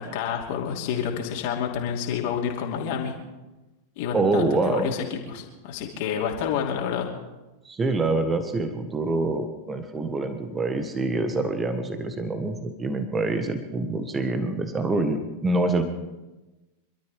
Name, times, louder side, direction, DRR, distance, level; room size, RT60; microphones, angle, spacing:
voice 1, 0.0-3.1 4.0-7.1, left 7 dB, 50° left, 0 dB, 2.9 m, -29 dB
voice 2, 4.1-4.9 7.6-15.8, right 2 dB, 15° right, 8 dB, 1.6 m, -26 dB
26.5 x 13.0 x 3.6 m, 1.1 s
figure-of-eight pair, 90°, 0 cm